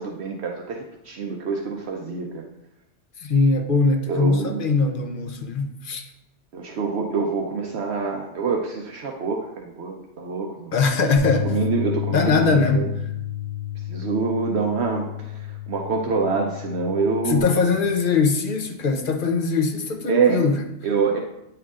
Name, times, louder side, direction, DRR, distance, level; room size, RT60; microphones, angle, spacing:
voice 1, 0.0-2.4 4.1-4.6 6.5-10.7 11.4-12.8 13.9-15.1 15.7-17.5 20.1-20.4 20.8-21.2, right 5 dB, 70° right, 1 dB, 0.9 m, -25 dB
voice 2, 3.2-6.0 10.7-11.6 12.1-12.9 17.2-20.6, left 4 dB, 55° left, 4 dB, 0.8 m, -21 dB
Bass guitar, 11.2-17.4, left 10 dB, 50° right, 1.8 m, -31 dB
9.0 x 4.5 x 2.4 m, 0.84 s
omnidirectional pair, 1.2 m